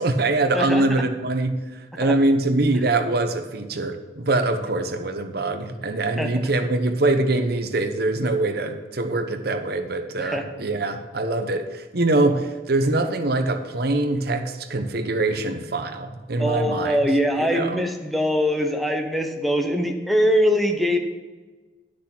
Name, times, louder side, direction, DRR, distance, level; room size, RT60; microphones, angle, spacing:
voice 1, 0.0-17.0 17.4-17.8, right 2 dB, 60° right, 7 dB, 1.0 m, -23 dB
voice 2, 0.5-0.8 2.0-2.1 6.2-6.3 10.2-10.4 16.4-21.0, equal, ahead, 4 dB, 1.0 m, -22 dB
10.5 x 6.5 x 6.0 m, 1.3 s
head